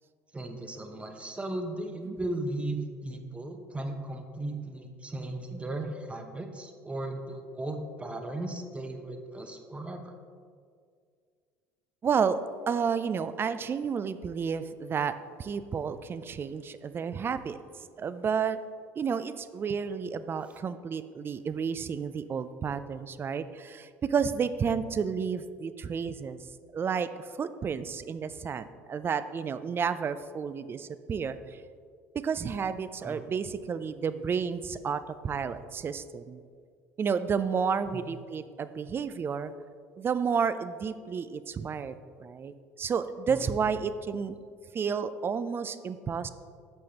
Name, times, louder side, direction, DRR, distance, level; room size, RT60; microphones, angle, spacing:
voice 1, 0.3-10.1 33.0-33.2 37.9-38.0 43.3-43.7, right 1 dB, 15° right, 5 dB, 0.8 m, -36 dB
voice 2, 12.0-12.4 12.7-15.1 15.4-17.6 18.0-18.6 19.0-26.4 26.7-27.1 27.4-31.6 32.2-36.4 37.0-39.5 40.0-44.4 44.7-46.3, right 6 dB, 35° right, 13 dB, 0.4 m, -31 dB
8.6 x 6.2 x 2.9 m, 2.1 s
supercardioid pair, 80°, 7 cm